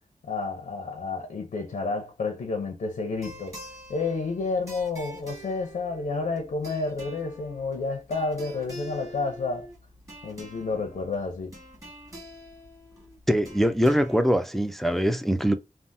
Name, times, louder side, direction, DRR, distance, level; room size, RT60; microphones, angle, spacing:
voice 1, 0.2-3.6 3.9-9.7 10.2-11.5, left 3 dB, 90° left, 0.6 m, -30 dB
sound 1, 3.1-14.2, equal, 25° right, 1.3 m, -46 dB
voice 2, 13.3-15.5, equal, ahead, 0.3 m, -23 dB
3.4 x 2.1 x 2.6 m
wide cardioid pair, 135°, 13 cm